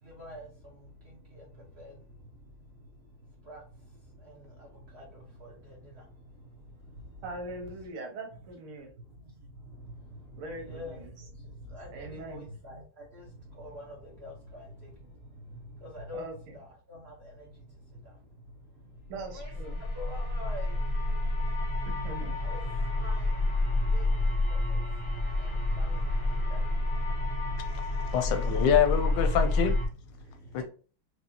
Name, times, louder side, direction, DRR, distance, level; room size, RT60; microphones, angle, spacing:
voice 1, 0.0-7.4 9.0-28.5 29.8-30.6, left 1 dB, 55° right, 0.7 m, -47 dB
voice 2, 7.2-8.9 10.4-11.1 11.9-12.5 16.1-16.5 19.1-19.8 21.8-22.4, right 2 dB, 85° right, 1.7 m, -41 dB
sound 1, 19.2-29.8, left 2 dB, 50° left, 0.7 m, -29 dB
voice 3, 28.1-29.8 30.5-30.6, left 8 dB, 75° left, 1.1 m, -25 dB
4.7 x 2.4 x 2.8 m
omnidirectional pair, 2.3 m